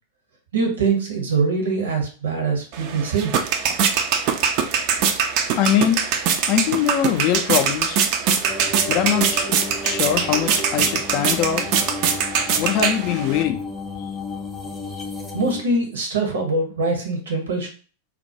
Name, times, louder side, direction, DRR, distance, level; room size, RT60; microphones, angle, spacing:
voice 1, 0.5-3.3 15.3-17.7, right 3 dB, 65° right, 1 dB, 0.7 m, -23 dB
sound 1, 2.7-13.4, right 7 dB, 45° right, 0.3 m, -22 dB
voice 2, 5.6-6.0 6.5-8.0 8.9-9.5 9.8-11.7 12.6-13.6, left 9 dB, 40° left, 7 dB, 0.3 m, -22 dB
sound 2, 8.4-15.6, left 3 dB, 10° left, 0.6 m, -32 dB
2.2 x 2.1 x 2.7 m, 0.39 s
figure-of-eight pair, 90°, 0 cm